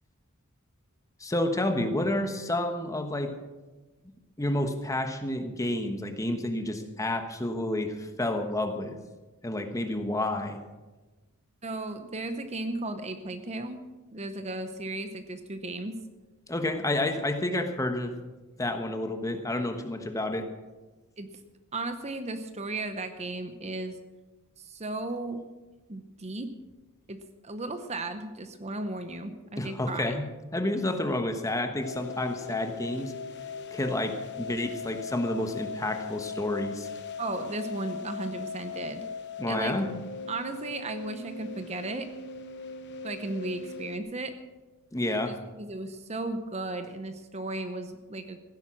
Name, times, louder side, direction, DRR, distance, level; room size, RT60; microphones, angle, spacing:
voice 1, 1.2-3.4 4.4-9.0 9.4-10.6 16.5-18.1 18.6-20.5 29.6-30.2 30.5-33.1 33.7-36.9 39.4-39.9 44.9-45.4, left 1 dB, 15° left, 6 dB, 1.2 m, -30 dB
voice 2, 11.6-13.8 14.1-16.0 21.2-21.3 21.7-24.0 24.6-25.4 25.9-26.5 27.1-30.2 37.2-39.0 39.5-39.8 40.3-42.1 43.0-44.3 45.3-48.4, right 2 dB, 30° right, 9 dB, 0.8 m, -35 dB
sound 1, 31.8-44.0, left 5 dB, 50° left, 1.1 m, -39 dB
15.5 x 10.5 x 6.3 m, 1.2 s
head